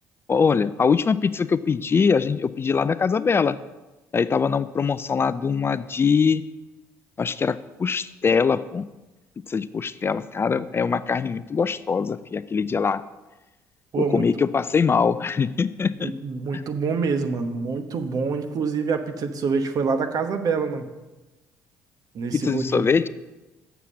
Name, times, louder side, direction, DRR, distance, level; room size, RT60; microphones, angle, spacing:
voice 1, 0.3-3.6 4.1-6.4 7.2-8.9 9.5-13.0 14.0-16.1 16.5-16.6 22.3-23.1, left 5 dB, 30° left, 15 dB, 0.4 m, -22 dB
voice 2, 13.9-14.3 16.0-20.9 22.1-22.9, right 5 dB, 55° right, 7 dB, 1.0 m, -26 dB
7.2 x 6.8 x 6.3 m, 1.1 s
hypercardioid pair, 60°, 8 cm